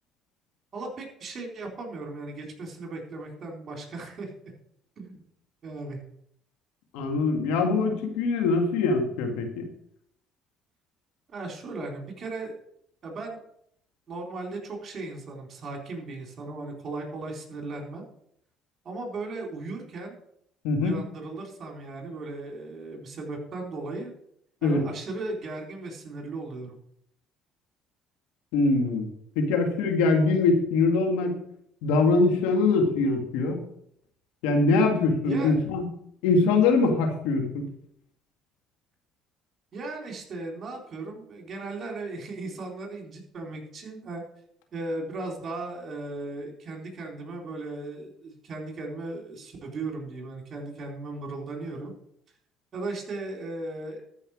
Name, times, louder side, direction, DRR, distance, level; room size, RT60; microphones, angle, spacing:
voice 1, 0.7-4.3 5.0-5.2 5.6-6.0 11.3-12.5 13.0-13.4 14.1-18.0 18.8-20.2 20.8-24.1 24.6-26.8 35.2-35.5 39.7-44.2 44.7-51.9 52.7-54.0, right 2 dB, 45° right, 1 dB, 3.9 m, -36 dB
voice 2, 6.9-9.7 20.6-21.0 24.6-24.8 28.5-29.1 29.4-31.4 31.8-33.6 34.4-35.9 36.2-37.6, left 3 dB, 85° left, 3 dB, 1.9 m, -23 dB
13.5 x 5.7 x 4.9 m, 0.70 s
supercardioid pair, 75°, 0 cm